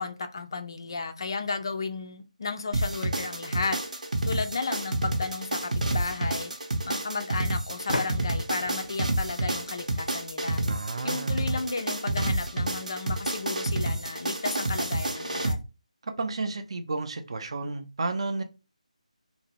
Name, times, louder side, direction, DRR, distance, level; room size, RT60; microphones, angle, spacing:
voice 1, 0.0-4.0 4.2-6.5 6.8-10.6 11.0-15.6, left 4 dB, 40° left, 0.3 m, -33 dB
sound 1, 2.7-15.5, right 2 dB, 85° right, 0.8 m, -29 dB
sound 2, 4.9-5.0 7.9-10.5, left 2 dB, 90° left, 0.5 m, -37 dB
voice 2, 10.6-11.3 16.0-18.4, right 3 dB, 45° right, 0.4 m, -32 dB
2.6 x 2.0 x 2.8 m
figure-of-eight pair, 170°, 4 cm